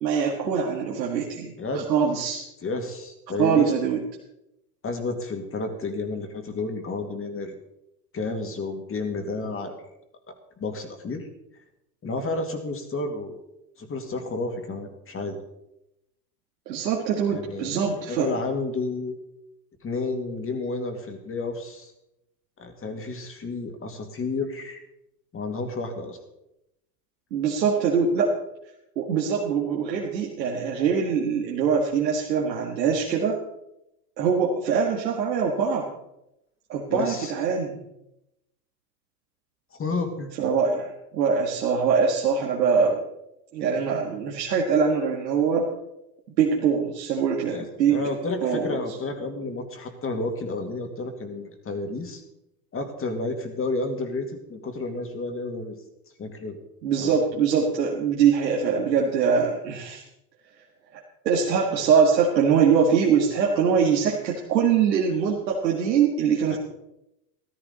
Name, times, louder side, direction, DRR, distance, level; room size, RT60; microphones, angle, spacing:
voice 1, 0.0-1.5 1.9-2.4 3.4-4.0 16.7-18.3 27.3-28.4 29.0-33.4 34.2-35.9 36.7-37.8 40.4-43.0 43.5-45.7 46.4-48.0 48.4-48.7 56.8-60.0 61.2-66.6, right 6 dB, 85° right, -1 dB, 1.9 m, -23 dB
voice 2, 2.6-3.7 4.8-7.5 8.1-9.7 10.6-11.3 12.0-13.3 13.8-15.4 17.3-19.1 19.8-21.9 22.6-24.8 25.3-26.2 36.9-37.3 39.8-40.3 47.5-52.2 52.7-55.8 56.2-56.6 57.0-57.2 66.5-66.6, left 3 dB, 25° left, 5 dB, 2.4 m, -31 dB
14.0 x 13.0 x 4.1 m, 0.86 s
hypercardioid pair, 100°, 49 cm